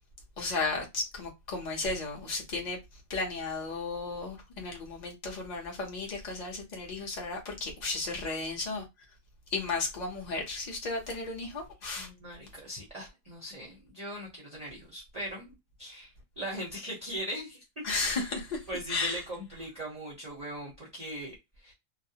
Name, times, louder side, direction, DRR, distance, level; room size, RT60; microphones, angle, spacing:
voice 1, 0.4-2.8 3.1-8.9 9.5-12.1 17.8-19.2, left 3 dB, 40° left, 0.7 m, -34 dB
voice 2, 12.0-18.2 18.7-21.7, right 1 dB, 40° right, 0.6 m, -40 dB
2.4 x 2.0 x 2.7 m
omnidirectional pair, 1.4 m